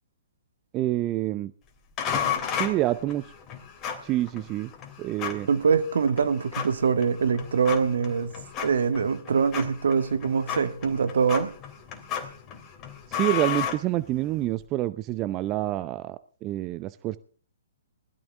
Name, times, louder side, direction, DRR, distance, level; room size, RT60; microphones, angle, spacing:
voice 1, 0.7-1.5 2.5-3.2 4.0-4.7 5.0-5.5 13.1-17.2, right 15 dB, 25° right, 0.6 m, -27 dB
sound 1, 2.0-14.5, left 8 dB, 25° left, 3.0 m, -34 dB
voice 2, 5.5-8.3 8.6-11.5, right 6 dB, 65° right, 1.7 m, -24 dB
20.5 x 13.5 x 3.4 m
figure-of-eight pair, 125°, 0 cm